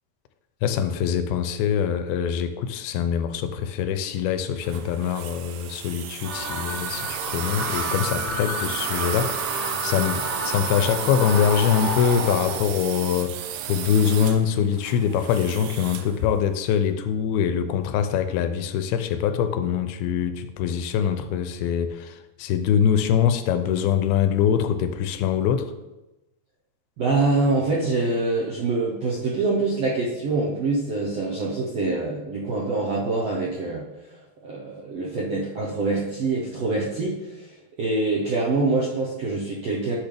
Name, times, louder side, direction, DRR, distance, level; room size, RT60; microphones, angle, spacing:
voice 1, 0.6-25.7, left 8 dB, 85° left, 9 dB, 2.4 m, -24 dB
sound 1, 4.6-16.2, right 10 dB, 90° right, 2.6 m, -33 dB
sound 2, 6.2-12.6, right 1 dB, 55° right, 3.5 m, -30 dB
voice 2, 27.0-33.8 34.4-37.5 37.8-40.0, right 3 dB, 75° right, -4 dB, 1.4 m, -25 dB
10.5 x 6.2 x 3.4 m, 1.0 s
omnidirectional pair, 4.4 m